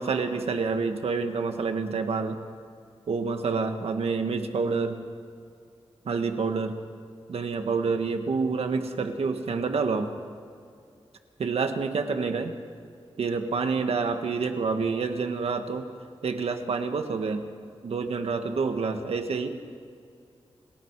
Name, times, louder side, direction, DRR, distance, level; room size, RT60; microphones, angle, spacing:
voice 1, 0.0-2.4 3.1-5.0 6.1-6.7 7.3-10.1 11.4-12.5 13.2-15.9 16.2-17.4 17.8-19.5, right 4 dB, 90° right, 6 dB, 1.8 m, -28 dB
30.0 x 19.0 x 4.9 m, 2.3 s
wide cardioid pair, 160°, 10 cm